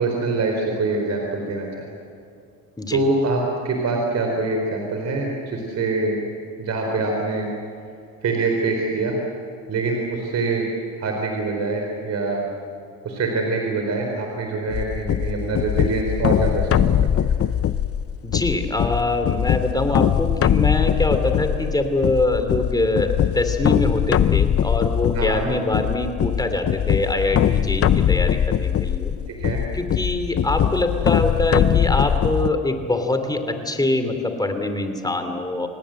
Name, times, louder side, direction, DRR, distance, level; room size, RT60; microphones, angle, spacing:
voice 1, 0.0-1.9 2.9-6.2 6.6-7.5 8.2-9.2 9.7-10.7 11.0-12.5 13.0-17.3 25.1-25.5 29.3-29.6, right 3 dB, 50° right, 1 dB, 4.3 m, -24 dB
sound 1, 14.7-32.5, left 9 dB, 40° left, 0.8 m, -21 dB
voice 2, 18.2-29.2 29.7-35.7, left 2 dB, 10° left, 6 dB, 3.1 m, -24 dB
27.5 x 19.0 x 7.9 m, 2.4 s
cardioid pair, 100°, 35 cm